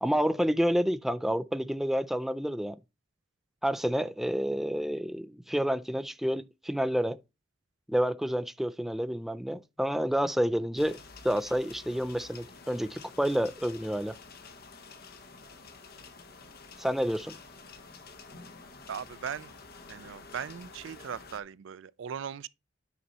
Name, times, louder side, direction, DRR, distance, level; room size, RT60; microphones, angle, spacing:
voice 1, 0.0-2.8 3.6-7.2 7.9-11.0 11.2-14.2 16.8-17.3, equal, ahead, 0.3 m, -29 dB
sound 1, 10.8-21.4, left 4 dB, 55° left, 1.2 m, -49 dB
voice 2, 18.9-19.5 19.9-22.5, right 8 dB, 75° right, 0.4 m, -38 dB
9.4 x 5.6 x 4.1 m
head